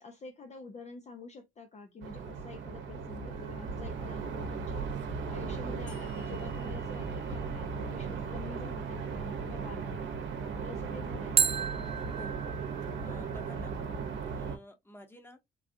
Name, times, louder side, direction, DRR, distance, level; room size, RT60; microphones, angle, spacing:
voice 1, 0.0-10.2 10.6-11.5, left 3 dB, 35° left, 0.6 m, -47 dB
sound 1, 2.0-14.6, right 5 dB, 75° right, 0.8 m, -37 dB
sound 2, 3.3-4.4 11.4-14.3, right 7 dB, 30° right, 0.7 m, -34 dB
sound 3, 5.9-9.2, left 5 dB, 65° left, 2.0 m, -60 dB
voice 2, 13.0-13.7 14.2-15.4, left 1 dB, 10° left, 1.1 m, -50 dB
3.9 x 2.3 x 2.6 m
cardioid pair, 90°, 20 cm